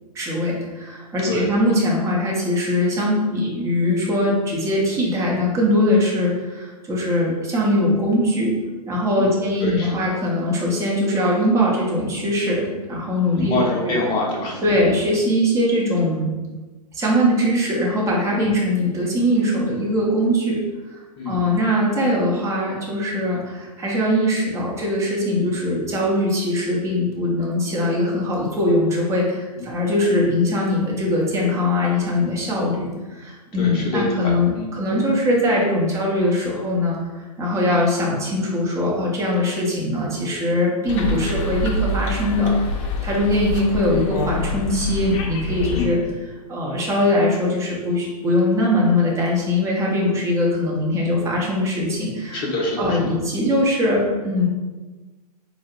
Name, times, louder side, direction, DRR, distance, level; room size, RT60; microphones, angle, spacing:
voice 1, 0.1-8.5 8.9-14.0 14.6-16.3 16.9-20.6 21.3-37.0 37.4-52.4 52.8-54.5, left 1 dB, 15° right, -3 dB, 0.7 m, -21 dB
voice 2, 9.1-9.9 13.3-14.6 18.4-18.5 21.2-21.4 33.6-34.7 45.7-46.0 52.3-52.9, left 2 dB, 25° left, -3 dB, 0.9 m, -26 dB
sound 1, 40.9-45.9, left 3 dB, 50° left, 0.5 m, -26 dB
4.3 x 2.1 x 2.4 m, 1.2 s
hypercardioid pair, 130°, 20 cm